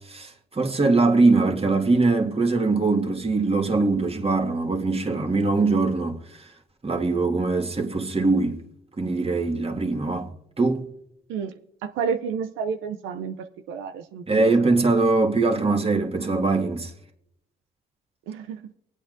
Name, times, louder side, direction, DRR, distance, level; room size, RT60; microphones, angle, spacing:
voice 1, 0.1-6.5 6.8-8.6 9.0-10.3 10.6-10.9 14.3-16.9, right 3 dB, 30° right, 1.9 m, -22 dB
voice 2, 11.8-13.4 13.7-14.5 18.3-18.6, right 6 dB, 85° right, 0.6 m, -30 dB
24.5 x 8.5 x 2.6 m
supercardioid pair, 55°, 20 cm